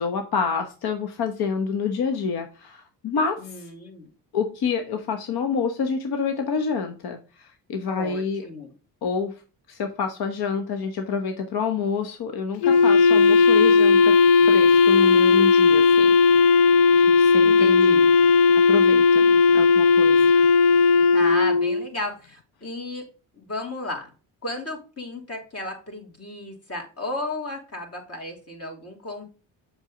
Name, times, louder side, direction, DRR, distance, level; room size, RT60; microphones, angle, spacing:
voice 1, 0.0-3.6 4.3-8.4 9.0-9.3 9.7-14.2 14.4-16.1 16.5-18.1 18.7-20.4, left 5 dB, 60° left, 5 dB, 1.2 m, -28 dB
voice 2, 3.4-4.1 7.9-8.7 17.4-18.1 21.1-23.1 23.3-24.1 24.4-29.2, left 2 dB, 35° left, 2 dB, 2.9 m, -34 dB
Wind instrument woodwind instrument, 12.6-21.9, left 4 dB, 80° left, 0.7 m, -16 dB
7.3 x 5.8 x 3.8 m, 0.35 s
cardioid pair, 95°, 41 cm